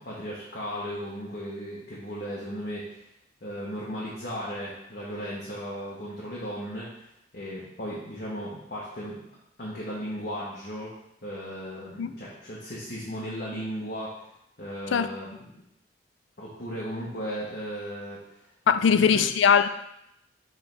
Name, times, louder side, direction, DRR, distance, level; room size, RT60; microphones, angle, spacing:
voice 1, 0.0-3.1 3.4-6.9 7.3-9.2 9.6-10.9 11.2-14.1 14.6-15.5 16.4-18.2 18.8-19.2, equal, 55° left, -7 dB, 1.2 m, -36 dB
voice 2, 18.7-19.7, left 7 dB, 80° left, 11 dB, 0.4 m, -20 dB
6.7 x 4.6 x 3.3 m, 0.79 s
head